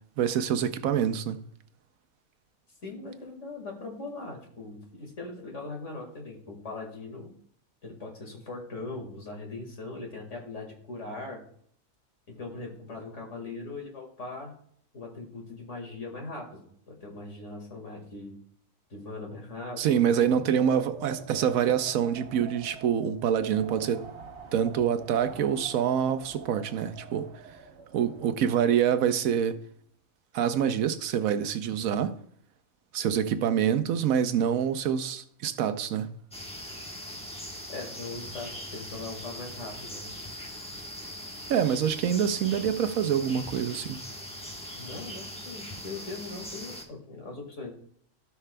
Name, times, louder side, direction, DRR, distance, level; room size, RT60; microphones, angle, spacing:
voice 1, 0.2-1.4 19.8-24.1 24.5-27.3 27.9-29.6 30.3-32.2 32.9-36.1 41.5-44.0, right 8 dB, 80° right, 1.1 m, -26 dB
voice 2, 2.8-7.3 7.8-11.4 12.3-14.5 14.9-18.4 18.9-19.9 20.2-20.4 37.7-40.2 44.7-47.7, left 3 dB, 60° left, 2.2 m, -40 dB
Wind, 20.2-28.7, right 5 dB, 55° right, 1.1 m, -46 dB
sound 1, 36.3-46.8, equal, 5° left, 1.1 m, -41 dB
16.0 x 5.9 x 2.2 m
omnidirectional pair, 1.5 m